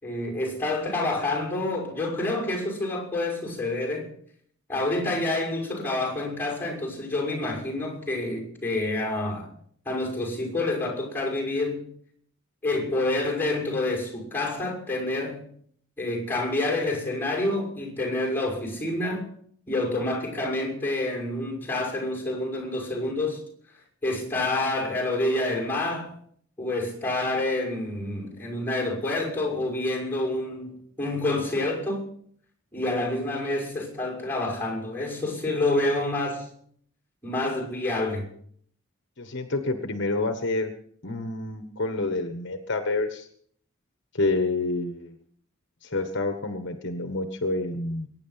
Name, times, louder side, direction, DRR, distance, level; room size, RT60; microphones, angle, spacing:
voice 1, 0.0-4.1 4.7-9.5 9.8-11.9 12.6-15.5 16.0-19.3 19.7-23.4 24.0-26.1 26.6-32.0 32.7-36.5 37.2-38.3, left 2 dB, 10° left, 6.1 m, -28 dB
voice 2, 39.2-40.7 41.0-43.3 44.1-45.2 45.8-48.1, left 2 dB, 60° left, 1.4 m, -28 dB
22.5 x 10.0 x 5.8 m
head